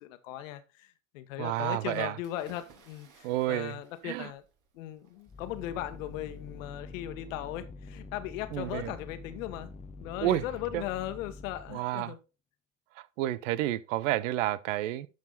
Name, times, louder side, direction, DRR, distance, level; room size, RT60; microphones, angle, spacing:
voice 1, 0.0-4.4 4.7-9.7 10.0-12.2, left 13 dB, 70° left, 1.4 m, -38 dB
voice 2, 1.4-2.2 3.2-4.3 8.5-8.9 10.2-10.4 10.7-10.8 11.7-12.1 13.2-15.1, right 14 dB, 70° right, 0.8 m, -30 dB
sound 1, 2.2-7.0, right 6 dB, 50° right, 2.8 m, -61 dB
sound 2, 5.3-11.8, left 3 dB, 15° left, 0.8 m, -46 dB
12.0 x 5.0 x 4.0 m
hypercardioid pair, 80°, 40 cm